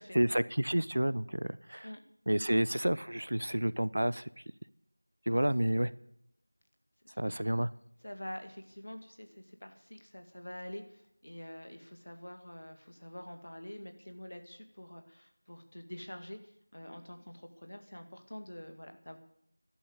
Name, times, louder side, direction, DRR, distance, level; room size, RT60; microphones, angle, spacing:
voice 1, 0.0-1.9 2.3-4.3 5.3-5.9 7.2-7.7, right 1 dB, 55° right, 17 dB, 0.6 m, -30 dB
voice 2, 8.0-16.4 16.7-19.2, left 1 dB, 55° left, 6 dB, 2.1 m, -46 dB
13.5 x 11.5 x 6.6 m, 0.74 s
figure-of-eight pair, 175°, 0 cm